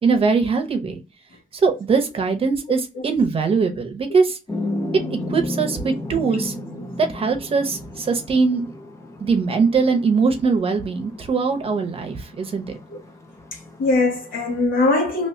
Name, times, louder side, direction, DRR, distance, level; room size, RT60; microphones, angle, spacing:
voice 1, 0.0-1.0 1.6-4.4 5.3-6.5 7.0-8.7 9.2-12.6, right 4 dB, 40° right, 0.8 m, -21 dB
sound 1, 4.5-14.6, left 1 dB, 20° left, 0.6 m, -34 dB
voice 2, 13.5-15.3, left 3 dB, 75° left, 1.6 m, -21 dB
3.0 x 2.8 x 3.2 m
wide cardioid pair, 165°, 15 cm